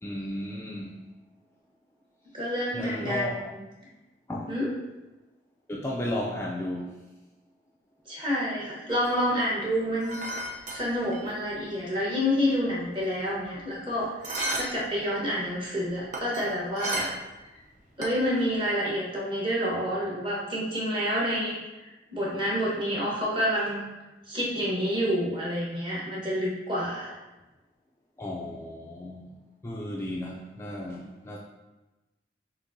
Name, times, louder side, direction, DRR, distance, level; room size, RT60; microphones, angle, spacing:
voice 1, 0.0-1.0 2.7-3.5 4.3-4.5 5.7-6.9 28.2-29.2 29.6-31.4, left 1 dB, 15° left, -3 dB, 0.3 m, -34 dB
voice 2, 2.3-3.5 4.5-4.7 8.1-10.4 10.7-14.1 14.5-17.1 18.0-23.9 24.3-27.1, equal, 30° right, -5 dB, 1.1 m, -28 dB
sound 1, 8.9-11.6 11.8-11.9 12.2-13.8 14.2-14.9 15.2-17.4 17.7-18.5, right 1 dB, 45° right, 0.6 m, -34 dB
6.3 x 2.6 x 2.6 m, 1.1 s
head